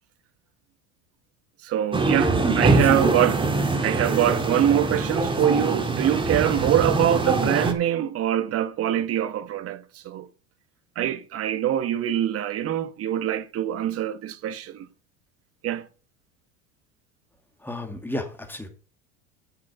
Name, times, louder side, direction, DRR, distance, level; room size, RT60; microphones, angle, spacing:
voice 1, 1.6-3.4 3.8-10.3 11.0-14.9 15.6-15.9, right 11 dB, 45° right, 1.2 m, -24 dB
sound 1, 1.9-7.7, right 3 dB, 15° right, 1.9 m, -23 dB
voice 2, 2.8-3.2 17.6-18.7, left 1 dB, 5° left, 2.4 m, -33 dB
8.1 x 7.7 x 5.6 m
hypercardioid pair, 95°, 33 cm